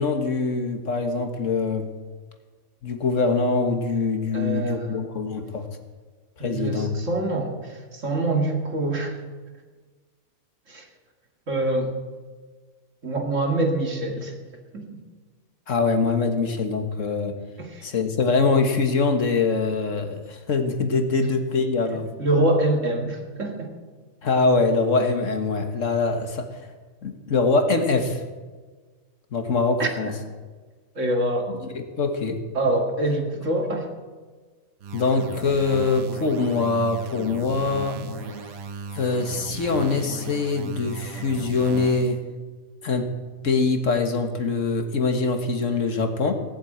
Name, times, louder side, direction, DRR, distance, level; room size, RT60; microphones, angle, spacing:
voice 1, 0.0-1.9 2.8-5.7 6.4-6.9 15.7-17.3 17.8-22.1 24.2-26.5 27.0-28.2 29.3-30.1 31.8-32.4 34.9-38.0 38.9-42.2 42.8-43.2 43.4-46.3, left 4 dB, 60° left, 6 dB, 1.7 m, -23 dB
voice 2, 4.3-5.1 6.4-9.2 10.7-10.9 11.5-11.9 13.0-14.3 14.7-14.9 17.6-17.8 20.9-21.3 22.2-23.7 29.8-30.2 31.0-31.5 32.5-33.9, right 1 dB, 60° right, 2 dB, 2.4 m, -25 dB
sound 1, 34.8-42.2, right 4 dB, 75° right, 1.4 m, -36 dB
18.0 x 7.9 x 8.8 m, 1.4 s
omnidirectional pair, 1.5 m